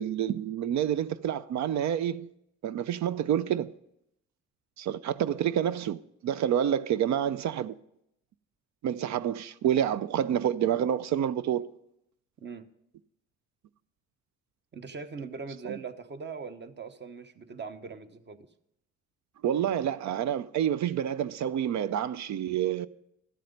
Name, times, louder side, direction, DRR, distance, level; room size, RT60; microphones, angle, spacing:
voice 1, 0.0-2.3 2.6-3.7 4.8-7.7 8.8-11.7 15.6-15.7 19.4-22.9, right 10 dB, 65° right, 0.5 m, -28 dB
voice 2, 14.7-18.4, right 5 dB, 35° right, 1.1 m, -41 dB
13.0 x 7.5 x 5.2 m
cardioid pair, 90°, 30 cm